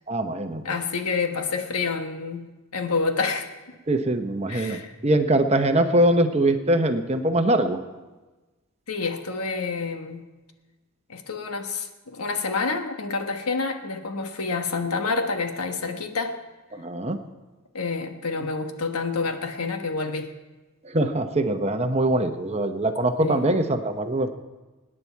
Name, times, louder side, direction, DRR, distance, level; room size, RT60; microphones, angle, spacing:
voice 1, 0.1-0.6 3.9-7.8 16.7-17.2 20.8-24.3, right 1 dB, 30° right, 0.8 m, -23 dB
voice 2, 0.6-3.5 4.5-4.9 8.9-10.3 11.1-16.4 17.7-20.3 23.2-23.4, left 4 dB, 85° left, 1.3 m, -28 dB
24.5 x 9.8 x 4.6 m
head